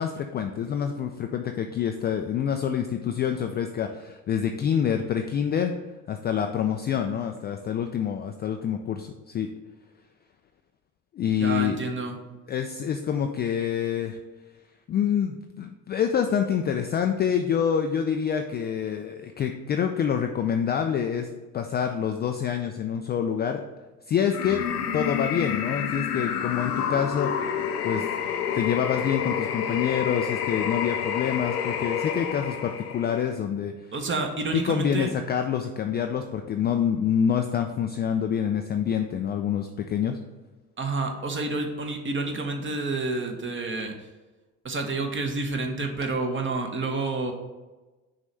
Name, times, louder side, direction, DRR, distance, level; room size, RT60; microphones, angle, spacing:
voice 1, 0.0-5.7 6.1-9.5 11.1-11.8 12.5-14.2 14.9-21.3 21.5-23.6 24.1-24.6 24.9-27.6 27.8-28.0 28.5-33.7 34.5-40.2, left 8 dB, 25° left, 5 dB, 0.3 m, -26 dB
voice 2, 11.4-12.2 33.9-35.1 40.8-44.1 44.6-47.3, right 3 dB, 25° right, 4 dB, 1.0 m, -29 dB
sound 1, 24.3-33.3, left 8 dB, 85° left, 0.6 m, -29 dB
6.2 x 3.2 x 5.3 m, 1.2 s
figure-of-eight pair, 55°, 45 cm